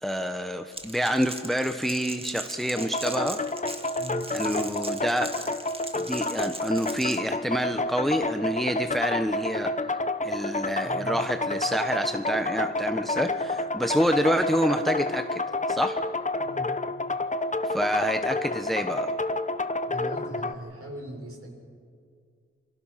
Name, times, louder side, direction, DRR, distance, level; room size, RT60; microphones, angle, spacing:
voice 1, 0.0-3.4 4.3-5.5 6.0-9.7 10.2-15.4 15.7-16.0 17.6-19.1, equal, ahead, 7 dB, 1.1 m, -27 dB
Crackle, 0.7-7.2, right 1 dB, 20° right, 2.0 m, -40 dB
sound 1, 2.8-20.5, left 2 dB, 25° left, 1.0 m, -29 dB
voice 2, 10.8-11.2 16.4-16.7 19.9-21.5, right 1 dB, 50° right, 0 dB, 6.8 m, -39 dB
28.0 x 23.5 x 5.8 m, 2.2 s
cardioid pair, 60°, 30 cm